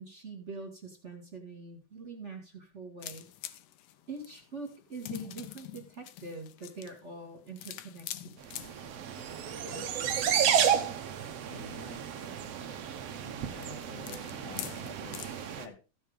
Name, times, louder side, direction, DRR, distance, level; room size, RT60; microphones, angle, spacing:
voice 1, 0.0-3.2 4.1-8.3, right 3 dB, 25° right, 2 dB, 1.6 m, -44 dB
sound 1, 3.0-15.6, left 13 dB, 75° left, 2.0 m, -47 dB
sound 2, 8.5-15.6, right 8 dB, 80° right, 1.3 m, -32 dB
voice 2, 9.6-10.9 11.4-12.0 13.2-15.3 15.5-15.8, left 5 dB, 35° left, 4 dB, 1.2 m, -49 dB
14.5 x 6.5 x 5.1 m, 0.34 s
omnidirectional pair, 4.5 m